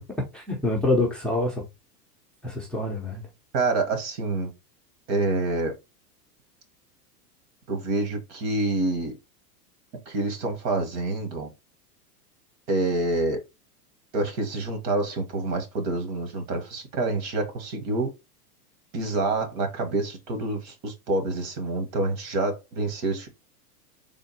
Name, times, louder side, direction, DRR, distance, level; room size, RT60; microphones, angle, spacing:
voice 1, 0.0-1.6 2.4-3.2, left 2 dB, ahead, 0.6 m, -26 dB
voice 2, 3.5-4.5 5.1-5.7 7.7-9.1 10.0-11.5 12.7-13.4 14.1-18.1 18.9-23.3, right 2 dB, 55° right, 1.6 m, -27 dB
3.6 x 2.4 x 4.2 m
supercardioid pair, 135°, 47 cm